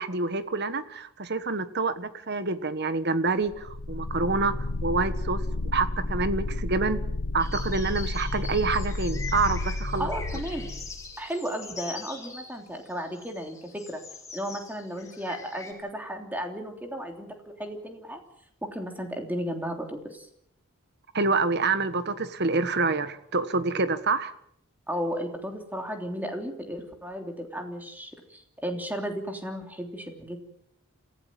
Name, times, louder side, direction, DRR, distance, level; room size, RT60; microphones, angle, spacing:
voice 1, 0.0-4.5 4.8-5.4 5.7-7.0 7.3-10.1 21.1-24.3, right 3 dB, 50° right, 12 dB, 1.4 m, -27 dB
sound 1, 3.5-11.2, left 2 dB, 60° left, 1.3 m, -31 dB
sound 2, 7.4-15.7, left 4 dB, 15° left, 4.2 m, -43 dB
voice 2, 10.0-10.7 11.2-14.0 14.3-17.3 17.6-18.2 18.6-20.3 24.9-30.4, equal, 10° right, 4 dB, 3.2 m, -34 dB
27.5 x 16.0 x 7.6 m, 0.73 s
head